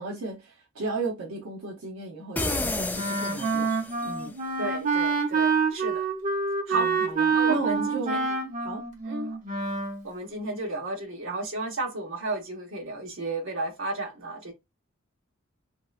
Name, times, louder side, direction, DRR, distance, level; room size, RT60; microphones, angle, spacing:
voice 1, 0.0-3.7 4.0-4.4 6.7-8.2 8.6-8.8, right 3 dB, 85° right, 0.7 m, -35 dB
sound 1, 2.4-4.2, left 2 dB, 10° left, 0.3 m, -31 dB
Wind instrument woodwind instrument, 2.9-10.0, right 4 dB, 40° right, 0.8 m, -27 dB
voice 2, 4.6-6.0 6.7-6.9 7.3-7.8 8.1-8.3 9.0-9.4 10.0-14.5, right 3 dB, 65° right, 1.0 m, -33 dB
3.1 x 2.8 x 2.3 m
head